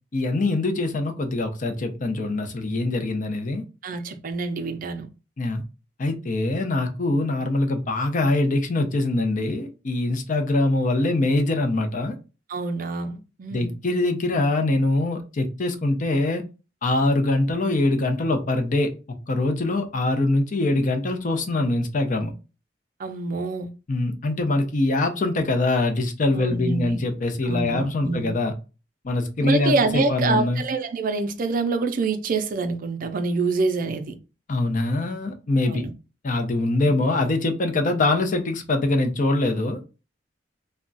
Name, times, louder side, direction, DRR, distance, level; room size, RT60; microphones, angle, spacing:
voice 1, 0.1-3.6 5.4-5.6 6.0-12.1 13.5-16.4 16.8-22.3 23.9-28.5 29.0-30.6 34.5-35.8 36.2-39.8, left 2 dB, 45° left, 0.5 m, -23 dB
voice 2, 3.8-5.1 12.5-13.7 23.0-23.7 26.4-27.0 27.4-28.4 29.4-34.2 35.7-35.9, right 3 dB, 50° right, 0.4 m, -26 dB
2.3 x 2.1 x 3.8 m
head